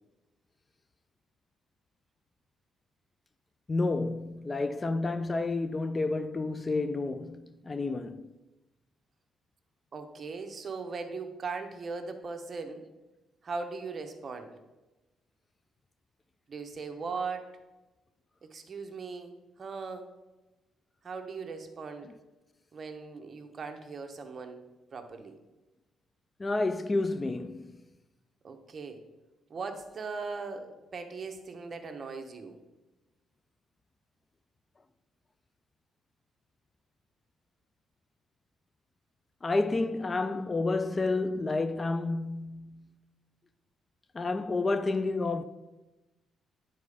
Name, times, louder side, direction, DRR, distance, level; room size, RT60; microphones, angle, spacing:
voice 1, 3.7-8.3 26.4-27.7 39.4-42.9 44.1-45.4, left 3 dB, 25° left, 0.4 m, -30 dB
voice 2, 9.9-12.8 13.4-14.6 16.5-17.6 18.4-20.1 21.0-22.1 22.7-24.6 24.9-25.4 28.4-29.0 29.5-32.6, right 4 dB, 40° right, 1.0 m, -39 dB
9.3 x 4.2 x 4.9 m
cardioid pair, 90°, 0 cm